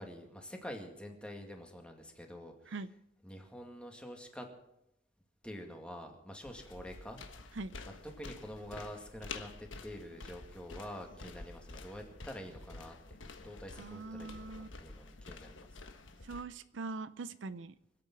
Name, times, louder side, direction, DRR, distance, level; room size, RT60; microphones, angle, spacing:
voice 1, 0.0-2.7 3.2-4.5 5.4-7.2 7.9-13.0 13.4-14.3 14.8-15.8, equal, 5° left, 3 dB, 2.2 m, -47 dB
sound 1, 6.4-16.4, left 3 dB, 80° left, 1.3 m, -49 dB
voice 2, 13.8-14.7 16.2-17.8, right 3 dB, 75° right, 14 dB, 0.5 m, -42 dB
24.5 x 8.7 x 6.1 m, 0.84 s
head